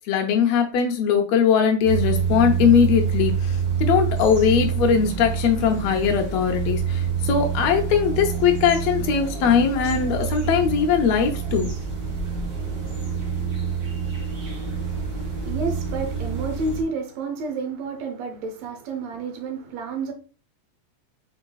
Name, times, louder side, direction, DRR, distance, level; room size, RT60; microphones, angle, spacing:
voice 1, 0.1-11.7, left 7 dB, 75° left, 1.8 m, -20 dB
sound 1, 1.8-16.8, right 6 dB, 40° right, 1.6 m, -27 dB
voice 2, 14.3-20.1, right 4 dB, 70° right, 1.9 m, -31 dB
5.0 x 4.6 x 2.3 m
omnidirectional pair, 3.3 m